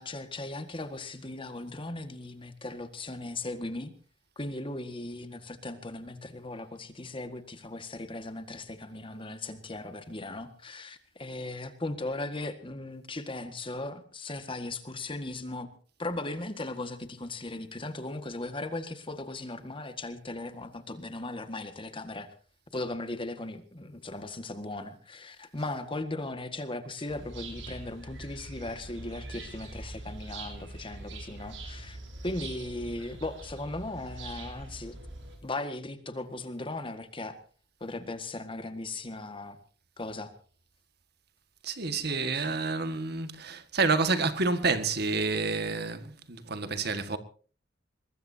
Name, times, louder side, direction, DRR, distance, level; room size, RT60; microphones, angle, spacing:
voice 1, 0.0-3.9 4.4-15.7 16.0-22.3 22.7-35.0 35.4-37.4 37.8-39.6 40.0-40.3 42.3-42.5, left 2 dB, 30° left, 1.8 m, -38 dB
sound 1, 27.1-35.4, right 2 dB, 75° right, 7.0 m, -43 dB
voice 2, 41.6-47.2, right 4 dB, 60° right, 1.8 m, -29 dB
23.0 x 20.5 x 2.8 m
head